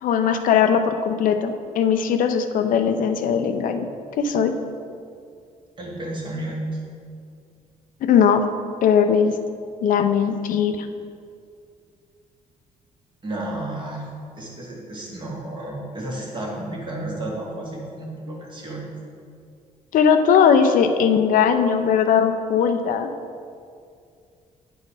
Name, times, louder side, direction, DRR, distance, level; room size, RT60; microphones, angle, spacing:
voice 1, 0.0-3.9 4.2-4.5 8.0-8.5 8.8-9.3 9.8-10.9 19.9-23.1, left 7 dB, 75° left, 7 dB, 0.5 m, -19 dB
voice 2, 5.8-6.8 13.2-14.1 14.4-18.8, right 1 dB, 35° right, -2 dB, 1.7 m, -32 dB
8.6 x 4.4 x 4.8 m, 2.3 s
cardioid pair, 115°, 14 cm